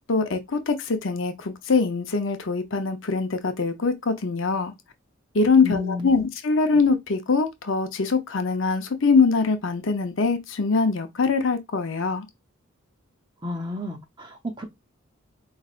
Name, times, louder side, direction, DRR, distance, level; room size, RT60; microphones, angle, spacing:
voice 1, 0.1-4.7 5.3-12.3, left 4 dB, 65° left, 0.7 m, -23 dB
voice 2, 5.6-6.1 13.4-14.6, left 2 dB, 20° right, 0.6 m, -31 dB
4.9 x 3.2 x 2.4 m
head